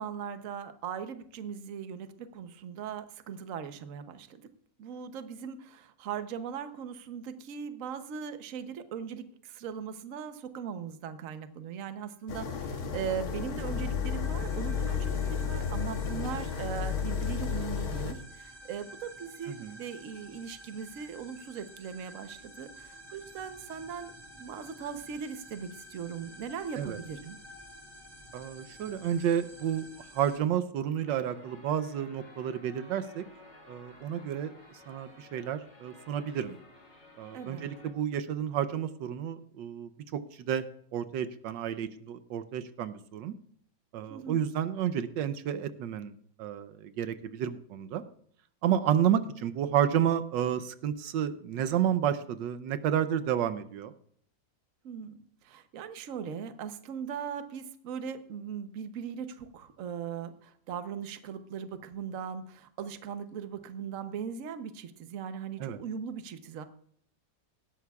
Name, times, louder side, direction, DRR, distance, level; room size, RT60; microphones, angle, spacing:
voice 1, 0.0-4.4 4.8-27.4 37.3-37.7 44.1-44.5 54.8-66.6, right 7 dB, 55° right, 9 dB, 1.1 m, -39 dB
sound 1, 12.3-18.1, left 7 dB, 60° left, 1.5 m, -32 dB
sound 2, 12.3-30.4, equal, 15° right, 1.6 m, -51 dB
voice 2, 28.3-29.8 30.1-33.2 33.7-34.5 34.9-36.6 37.2-40.2 40.5-40.6 40.9-43.3 43.9-46.1 46.4-48.0 48.6-53.9 65.6-65.8, right 9 dB, 85° right, 11 dB, 1.4 m, -30 dB
sound 3, 31.0-37.9, left 2 dB, 40° left, 3.4 m, -54 dB
17.5 x 12.5 x 2.4 m, 0.63 s
omnidirectional pair, 2.0 m